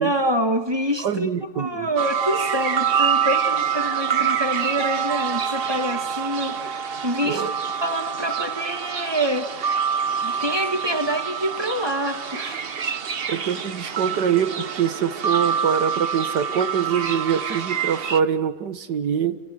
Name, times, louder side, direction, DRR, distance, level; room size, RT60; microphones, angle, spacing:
voice 1, 0.0-1.3 1.6-7.5 7.8-9.7 10.1-12.7, equal, 15° right, 1.8 m, -26 dB
voice 2, 1.0-1.9 7.2-7.5 13.3-19.4, right 8 dB, 70° right, 2.0 m, -24 dB
sound 1, 2.0-18.2, right 7 dB, 40° right, 1.0 m, -26 dB
29.5 x 27.5 x 6.7 m
omnidirectional pair, 1.9 m